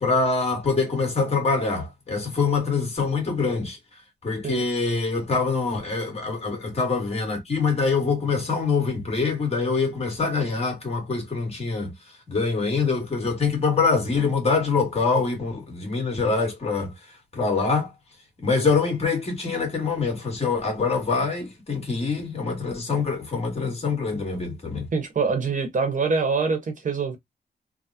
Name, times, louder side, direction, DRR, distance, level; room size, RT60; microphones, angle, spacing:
voice 1, 0.0-17.9 18.4-24.9, left 4 dB, 40° left, 1.7 m, -25 dB
voice 2, 24.9-27.2, right 4 dB, 50° right, 1.0 m, -24 dB
3.5 x 2.1 x 2.7 m
wide cardioid pair, 135°, 17 cm